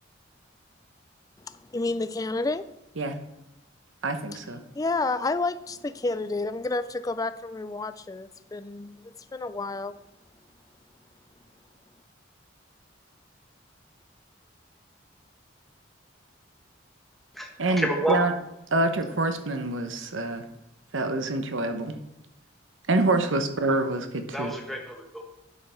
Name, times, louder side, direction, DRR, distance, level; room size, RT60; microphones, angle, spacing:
voice 1, 1.4-2.7 4.7-10.0, left 3 dB, 20° left, 13 dB, 0.3 m, -30 dB
voice 2, 4.0-4.6 17.6-18.3 18.7-20.4 20.9-21.9 22.9-24.5, right 2 dB, 80° right, 8 dB, 0.9 m, -26 dB
voice 3, 17.8-18.2 24.3-25.3, right 1 dB, ahead, 1 dB, 1.2 m, -29 dB
11.0 x 5.7 x 4.4 m, 0.89 s
head